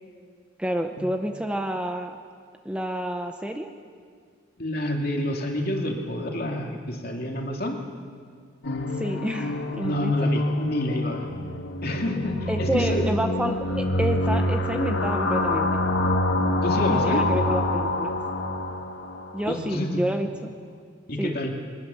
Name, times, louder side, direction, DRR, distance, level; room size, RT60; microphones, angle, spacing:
voice 1, 0.6-2.2 2.6-3.7 9.0-10.1 12.5-15.8 16.9-18.1 19.3-20.5 21.2-21.4, equal, 5° right, 5 dB, 0.7 m, -29 dB
voice 2, 4.6-7.8 9.8-11.3 11.8-13.1 16.6-17.3 19.5-20.0 21.1-21.6, left 1 dB, 50° left, 1 dB, 2.5 m, -28 dB
sound 1, 8.6-19.4, left 1 dB, 65° left, 1.6 m, -26 dB
22.0 x 20.0 x 7.1 m, 2.1 s
head